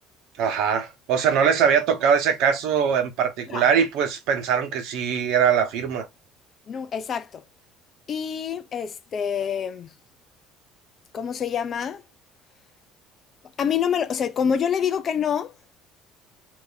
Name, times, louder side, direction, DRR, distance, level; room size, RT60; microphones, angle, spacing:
voice 1, 0.4-6.1, right 7 dB, 70° right, 0.9 m, -22 dB
voice 2, 6.7-7.4 8.1-9.9 11.1-12.0 13.6-15.5, left 7 dB, 30° left, 0.4 m, -26 dB
3.3 x 2.7 x 3.9 m
cardioid pair, 165°, 0 cm